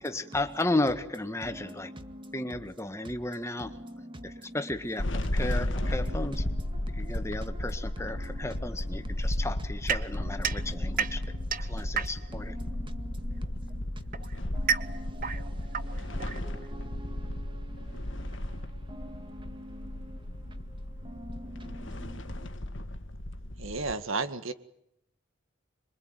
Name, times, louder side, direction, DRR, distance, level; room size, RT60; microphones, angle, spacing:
voice 1, 0.0-1.9 2.3-3.7 4.2-5.1 5.3-6.4 6.9-11.2 11.6-12.6, left 2 dB, 15° left, 8 dB, 1.7 m, -33 dB
voice 2, 2.0-2.3 7.0-7.1 12.7-13.0 13.3-13.4 14.5-17.4 18.9-19.9 21.0-21.7, equal, 25° right, 8 dB, 2.0 m, -46 dB
sound 1, 5.0-23.9, left 1 dB, 60° left, 1.7 m, -34 dB
sound 2, 9.9-12.5 13.5-16.9, right 7 dB, 40° right, 1.0 m, -33 dB
voice 3, 23.6-24.5, right 3 dB, 75° right, 10 dB, 2.0 m, -32 dB
26.5 x 23.5 x 9.2 m, 0.76 s
head